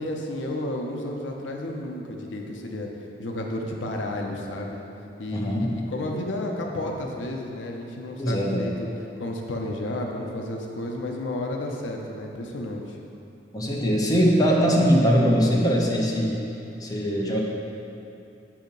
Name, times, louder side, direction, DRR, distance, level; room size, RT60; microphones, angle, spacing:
voice 1, 0.0-2.9 3.2-4.8 5.2-8.9 9.2-13.0, left 1 dB, 85° left, 1 dB, 0.6 m, -32 dB
voice 2, 5.3-5.8 8.2-8.6 13.5-16.4 16.8-17.4, equal, 20° left, -3 dB, 0.6 m, -21 dB
7.1 x 2.8 x 5.2 m, 2.7 s
head